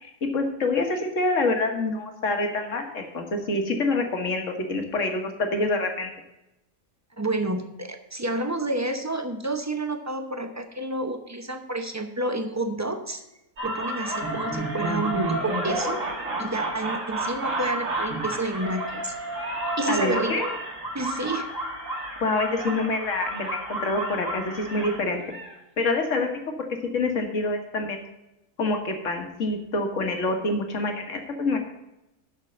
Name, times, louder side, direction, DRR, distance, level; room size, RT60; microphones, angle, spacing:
voice 1, 0.0-6.1 19.9-20.4 22.2-25.2 25.8-26.4 26.9-28.0 28.6-31.6, left 2 dB, 60° left, 4 dB, 1.8 m, -26 dB
voice 2, 7.2-13.2 13.6-16.0 16.4-19.1 19.8-20.3 20.9-21.5, right 2 dB, 15° right, 6 dB, 0.6 m, -29 dB
sound 1, 13.6-25.5, right 1 dB, 65° right, 2.1 m, -31 dB
7.5 x 6.4 x 7.6 m, 0.90 s
omnidirectional pair, 1.5 m